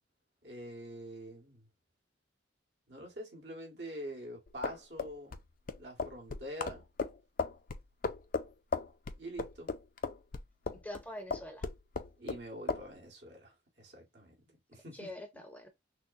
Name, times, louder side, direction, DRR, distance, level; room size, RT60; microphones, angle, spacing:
voice 1, 0.4-1.7 2.9-5.4 5.7-6.9 9.2-9.8 12.2-15.4, equal, 60° right, 2.0 m, -46 dB
sound 1, 4.5-11.0 11.3-12.4 12.7-12.9, left 4 dB, 45° left, 0.4 m, -36 dB
voice 2, 10.7-11.7 14.9-15.7, left 1 dB, 10° left, 0.6 m, -44 dB
6.1 x 2.1 x 2.7 m
head